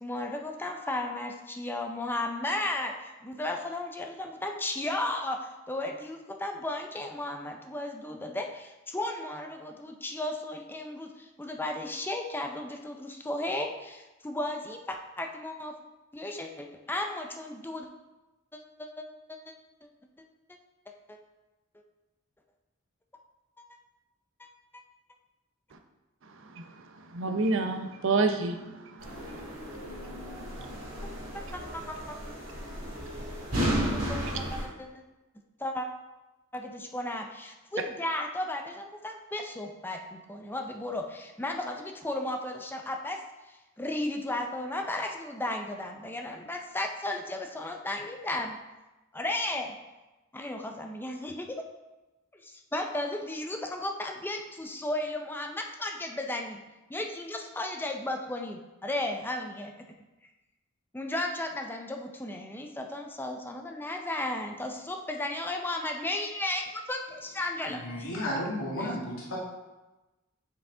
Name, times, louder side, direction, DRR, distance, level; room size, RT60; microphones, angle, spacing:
voice 1, 0.0-15.8 16.1-17.9 18.5-19.5 21.1-21.2 24.4-24.8 31.3-32.3 33.9-34.9 35.6-35.9 36.5-48.6 49.1-49.8 50.3-51.7 52.3-56.6 56.9-59.7 60.9-67.8 68.8-68.9, left 1 dB, 10° left, 3 dB, 0.5 m, -35 dB
voice 2, 27.1-29.4 30.4-30.5 31.0-31.1, right 3 dB, 65° right, 5 dB, 0.6 m, -29 dB
sound 1, 29.0-34.6, equal, 85° right, 2.2 m, -34 dB
voice 3, 67.7-69.4, left 1 dB, 85° left, -4 dB, 1.6 m, -33 dB
5.7 x 4.9 x 3.7 m, 1.1 s
head